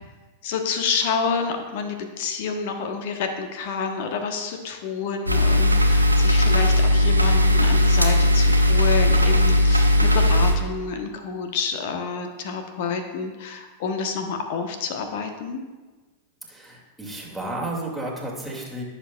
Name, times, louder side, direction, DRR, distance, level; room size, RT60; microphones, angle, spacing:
voice 1, 0.4-15.6, left 5 dB, 50° left, 6 dB, 1.1 m, -29 dB
sound 1, 5.3-10.5, left 1 dB, 85° right, 0.8 m, -18 dB
voice 2, 16.5-18.8, right 1 dB, ahead, -3 dB, 2.3 m, -32 dB
15.5 x 6.8 x 2.4 m, 1.3 s
figure-of-eight pair, 90°, 0 cm